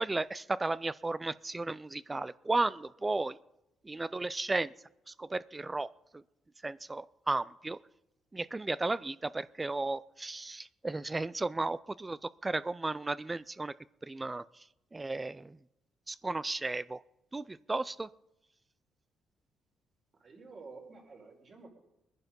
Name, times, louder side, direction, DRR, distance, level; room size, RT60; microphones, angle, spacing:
voice 1, 0.0-3.4 3.9-4.7 5.2-5.9 6.6-7.8 8.3-12.2 12.4-13.7 14.1-14.4 14.9-15.5 16.1-17.0 17.3-18.1, right 2 dB, 20° right, 18 dB, 0.4 m, -34 dB
voice 2, 20.2-21.7, right 4 dB, 45° right, 0 dB, 4.7 m, -50 dB
21.0 x 10.5 x 5.3 m, 0.88 s
cardioid pair, 90°, 0 cm